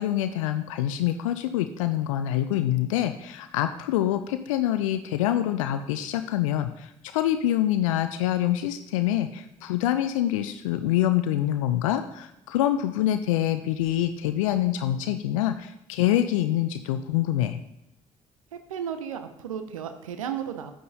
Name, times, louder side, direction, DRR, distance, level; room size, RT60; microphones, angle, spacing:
voice 1, 0.0-17.6, left 12 dB, 75° left, 10 dB, 0.4 m, -25 dB
voice 2, 18.5-20.7, right 8 dB, 80° right, 9 dB, 0.6 m, -34 dB
10.0 x 9.1 x 2.7 m, 0.82 s
figure-of-eight pair, 45°, 17 cm